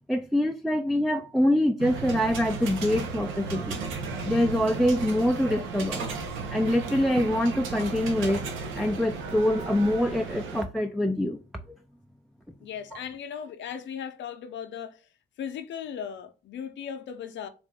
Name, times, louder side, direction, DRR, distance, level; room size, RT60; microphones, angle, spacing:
voice 1, 0.1-3.8 4.2-6.1 6.5-8.5 8.7-11.4, left 1 dB, ahead, 0.4 m, -25 dB
sound 1, 1.8-10.6, right 4 dB, 85° right, 1.0 m, -34 dB
voice 2, 12.6-15.1 15.4-17.5, left 8 dB, 65° left, 0.7 m, -37 dB
4.1 x 2.6 x 3.5 m
cardioid pair, 90°, 20 cm